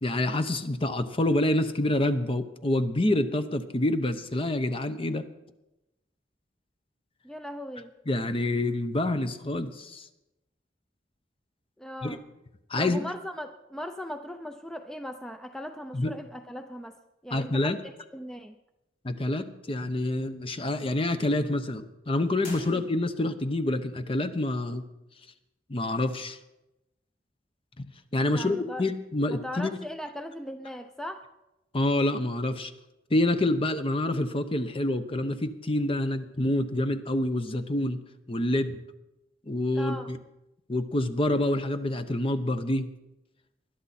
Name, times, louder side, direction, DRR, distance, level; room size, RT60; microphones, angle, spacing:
voice 1, 0.0-5.3 8.1-10.1 12.0-12.2 12.7-13.0 15.9-16.1 17.3-17.8 19.0-24.8 25.7-26.4 27.8-27.9 28.1-29.7 31.7-32.7 33.1-38.0 38.3-38.8 39.5-40.2 40.7-42.9, left 1 dB, 30° left, 9 dB, 0.8 m, -27 dB
voice 2, 7.2-7.9 11.8-12.2 12.8-18.5 22.7-22.8 28.3-28.8 29.3-31.3 39.7-40.1, equal, 5° left, 7 dB, 0.5 m, -39 dB
sound 1, 22.4-23.4, left 2 dB, 50° left, 5.4 m, -46 dB
20.5 x 11.0 x 4.3 m, 0.95 s
head